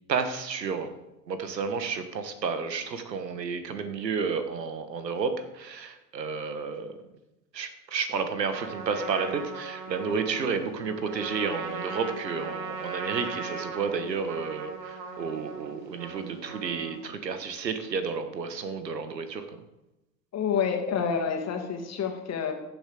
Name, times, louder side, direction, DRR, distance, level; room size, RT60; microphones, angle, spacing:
voice 1, 0.1-0.9 1.3-7.0 7.5-19.6, right 5 dB, 85° right, 9 dB, 1.5 m, -31 dB
Trumpet, 8.5-17.2, right 4 dB, 45° right, 2.5 m, -38 dB
voice 2, 20.3-22.5, left 6 dB, 30° left, 4 dB, 2.4 m, -28 dB
15.0 x 7.3 x 4.9 m, 0.96 s
hypercardioid pair, 90°, 49 cm